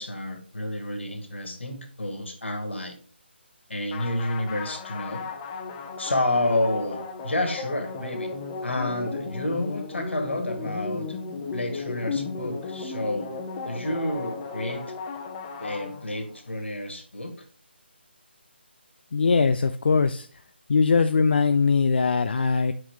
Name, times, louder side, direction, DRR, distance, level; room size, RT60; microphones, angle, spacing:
voice 1, 0.0-2.9 3.7-5.3 6.0-8.3 8.6-11.2 11.5-13.3 13.7-14.9 15.6-17.3, left 1 dB, 85° left, 5 dB, 1.8 m, -29 dB
sound 1, 3.9-16.5, left 4 dB, 20° left, 0.8 m, -35 dB
voice 2, 19.1-20.3 20.7-22.7, left 4 dB, 60° left, 8 dB, 0.4 m, -21 dB
5.7 x 4.9 x 3.5 m, 0.41 s
figure-of-eight pair, 155°, 6 cm